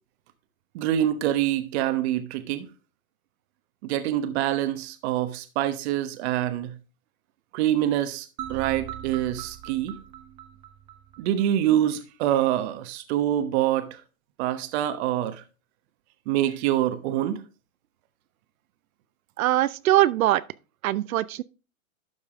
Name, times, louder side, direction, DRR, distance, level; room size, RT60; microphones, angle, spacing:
voice 1, 0.7-2.7 3.8-6.7 7.5-9.9 11.2-14.0 14.4-15.4 16.3-17.4, right 12 dB, 50° right, 1.1 m, -25 dB
sound 1, 8.4-11.5, right 11 dB, 15° right, 0.3 m, -40 dB
voice 2, 19.4-20.4 20.8-21.4, right 14 dB, 70° right, 0.7 m, -22 dB
12.0 x 5.5 x 3.6 m
hypercardioid pair, 135°, 43 cm